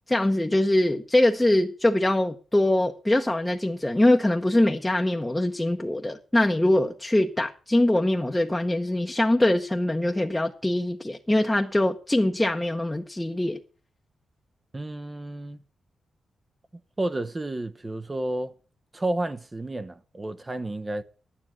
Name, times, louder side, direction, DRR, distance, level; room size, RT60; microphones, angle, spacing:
voice 1, 0.1-13.6, left 1 dB, 10° left, 0.8 m, -23 dB
voice 2, 14.7-15.6 17.0-18.5 18.9-21.0, right 1 dB, 20° right, 0.7 m, -31 dB
11.5 x 9.8 x 6.3 m
cardioid pair, 110°, 0 cm